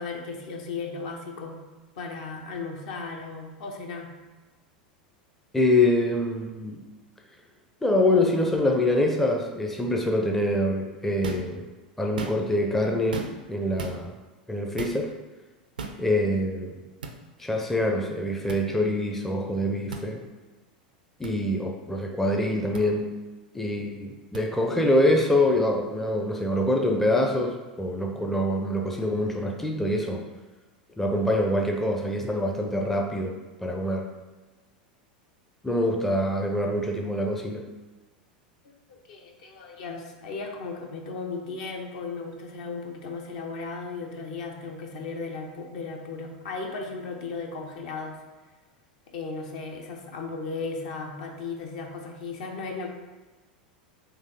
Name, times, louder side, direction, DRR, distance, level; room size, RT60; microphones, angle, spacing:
voice 1, 0.0-1.6 2.0-4.1 38.9-48.2 49.1-52.9, left 4 dB, 60° left, 2 dB, 0.7 m, -36 dB
voice 2, 5.5-6.8 7.8-11.7 12.0-14.1 14.5-15.1 16.0-16.7 17.4-20.2 21.2-23.1 23.5-30.3 31.0-34.1 35.6-37.7, left 1 dB, 5° left, 1 dB, 0.5 m, -25 dB
sound 1, 11.2-11.5 12.0-12.6 13.1-13.5 13.8-14.0 14.8-15.0 15.8-16.0 17.0-17.2 18.5-18.6 19.9-20.1 21.2-21.3 22.7-22.8 24.3-24.4, right 3 dB, 75° right, 0.5 m, -35 dB
4.0 x 2.9 x 4.1 m, 1.2 s
figure-of-eight pair, 85°, 5 cm